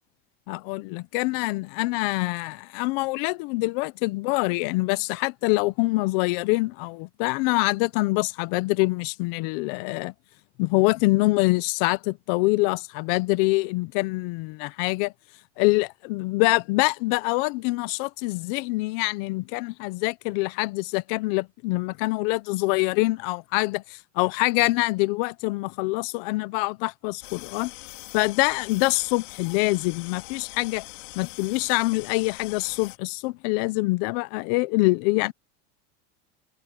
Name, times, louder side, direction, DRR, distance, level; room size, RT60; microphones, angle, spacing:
voice 1, 0.5-10.1 10.6-15.1 15.6-27.7 28.1-30.8 31.2-35.3, left 23 dB, 50° left, 0.7 m, -25 dB
sound 1, 27.2-33.0, left 22 dB, 85° left, 3.5 m, -43 dB
cardioid pair, 180°, 37 cm